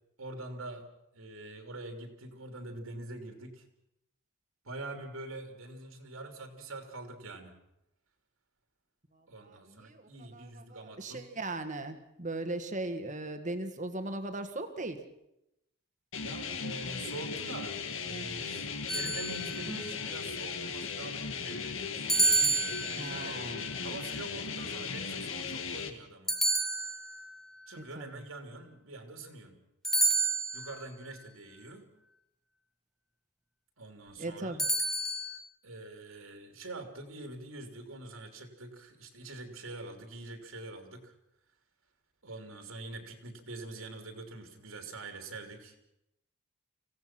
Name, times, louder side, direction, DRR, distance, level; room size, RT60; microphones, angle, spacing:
voice 1, 0.2-0.9 1.1-3.6 4.6-7.6 9.3-11.2 16.2-17.7 18.0-22.0 22.9-23.4 23.8-26.4 27.7-29.6 30.5-31.9 33.8-34.6 35.6-41.1 42.2-45.7, right 2 dB, 75° right, 5 dB, 3.1 m, -45 dB
voice 2, 9.1-15.0 23.0-23.7 27.8-28.1 34.2-34.7, right 2 dB, 35° right, 8 dB, 1.7 m, -38 dB
sound 1, 16.1-25.9, left 5 dB, 65° left, 1.7 m, -37 dB
sound 2, 18.9-19.8 22.1-23.3 26.3-27.3 29.8-30.8 34.6-35.4, right 2 dB, ahead, 1.3 m, -29 dB
25.5 x 17.0 x 6.1 m, 0.85 s
head